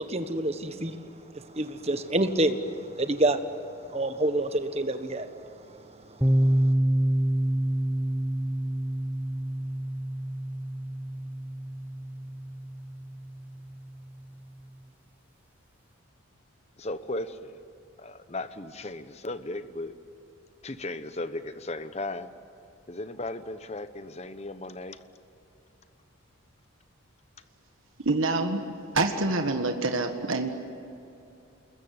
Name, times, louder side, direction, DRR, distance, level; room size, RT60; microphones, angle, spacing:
voice 1, 0.0-6.7, right 1 dB, 30° right, 8 dB, 1.3 m, -29 dB
sound 1, 6.2-13.9, right 1 dB, 10° right, 1.0 m, -28 dB
voice 2, 16.8-17.6 18.0-19.9 20.6-22.3 22.9-25.0, left 2 dB, 30° left, 11 dB, 0.9 m, -36 dB
voice 3, 28.1-28.6 28.9-30.5, right 2 dB, 65° right, 5 dB, 1.7 m, -26 dB
28.0 x 21.5 x 9.6 m, 2.7 s
head